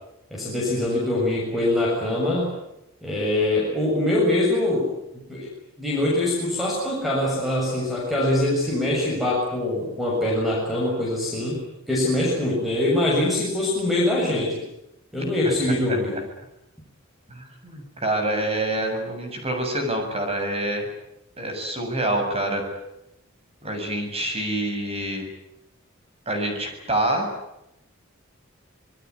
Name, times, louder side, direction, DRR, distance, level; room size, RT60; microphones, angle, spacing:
voice 1, 0.3-2.5 3.0-4.9 5.3-5.5 5.8-14.5 15.1-16.2, left 1 dB, ahead, -3 dB, 7.0 m, -23 dB
voice 2, 17.3-20.9 21.4-22.6 23.6-25.2 26.3-27.3, right 1 dB, 30° right, 4 dB, 7.4 m, -26 dB
26.5 x 21.5 x 9.8 m, 0.87 s
head